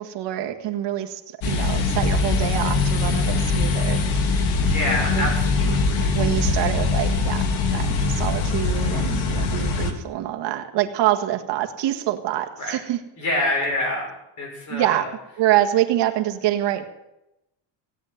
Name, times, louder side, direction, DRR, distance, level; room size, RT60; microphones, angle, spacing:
voice 1, 0.0-4.0 5.2-5.3 5.7-5.8 6.1-13.0 14.7-15.1 15.4-16.9, right 13 dB, 60° right, 4 dB, 1.8 m, -25 dB
sound 1, 1.4-9.9, left 3 dB, 70° left, 2.5 m, -22 dB
voice 2, 4.6-6.1 9.8-10.2 12.6-12.8 13.2-15.1, left 1 dB, 35° left, 1 dB, 6.6 m, -27 dB
17.0 x 9.2 x 8.1 m, 0.89 s
cardioid pair, 175°, 48 cm